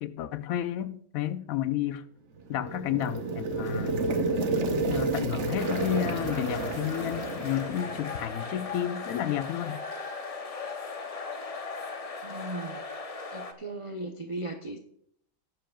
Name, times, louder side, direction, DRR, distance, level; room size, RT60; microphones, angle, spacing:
voice 1, 0.0-2.0 2.5-4.0 4.9-9.8, left 11 dB, 80° left, 1.0 m, -31 dB
sound 1, 2.4-8.4, right 3 dB, 60° right, 1.2 m, -31 dB
sound 2, 5.6-13.5, left 4 dB, 40° left, 0.6 m, -38 dB
voice 2, 12.2-13.0 13.3-14.8, right 2 dB, 35° right, 0.6 m, -37 dB
18.5 x 7.5 x 2.3 m
omnidirectional pair, 1.4 m